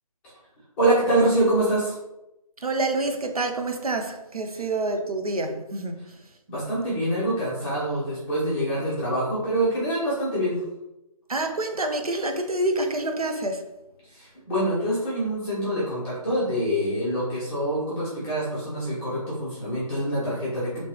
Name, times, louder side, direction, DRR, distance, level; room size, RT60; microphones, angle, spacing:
voice 1, 0.8-2.0 6.5-10.6 14.1-20.8, right 1 dB, 5° left, 0.6 m, -25 dB
voice 2, 2.6-6.2 11.3-13.7, right 2 dB, 85° right, 0.5 m, -27 dB
2.9 x 2.8 x 3.0 m
figure-of-eight pair, 150°, 19 cm